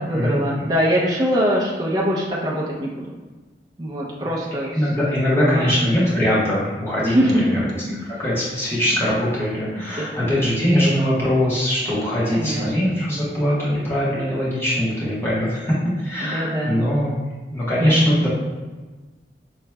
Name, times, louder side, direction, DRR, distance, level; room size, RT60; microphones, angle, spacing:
voice 1, 0.1-3.1 3.8-4.8 5.4-5.7 7.1-7.6 7.9-8.1 8.9-9.0 10.0-10.4 12.3-13.0 16.2-16.8 17.8-18.2, equal, 20° right, -4 dB, 0.5 m, -23 dB
voice 2, 4.7-7.6 8.1-15.7 16.0-17.2 17.5-18.3, equal, 15° left, -9 dB, 1.2 m, -21 dB
5.8 x 3.0 x 2.2 m, 1.3 s
head